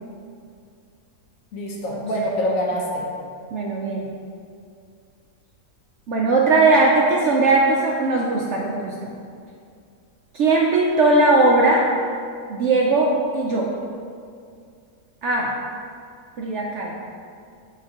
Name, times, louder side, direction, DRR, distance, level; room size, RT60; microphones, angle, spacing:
voice 1, 1.5-3.0, equal, 65° left, -2 dB, 1.2 m, -25 dB
voice 2, 3.5-4.1 6.1-9.1 10.3-11.9 12.5-13.7 15.2-15.5 16.4-16.9, right 2 dB, 65° right, -2 dB, 0.7 m, -19 dB
7.2 x 4.7 x 2.9 m, 2.3 s
omnidirectional pair, 1.6 m